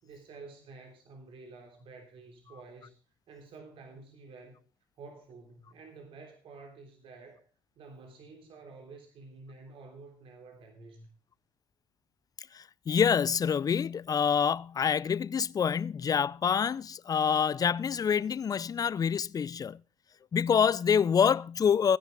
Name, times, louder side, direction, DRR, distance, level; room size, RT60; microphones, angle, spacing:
voice 1, 0.0-3.0 3.3-4.6 5.0-7.5 7.7-11.1, right 3 dB, 60° right, 3.3 m, -50 dB
voice 2, 12.5-19.8 20.3-22.0, left 7 dB, 35° left, 0.5 m, -26 dB
15.5 x 10.5 x 3.5 m
hypercardioid pair, 55°, 10 cm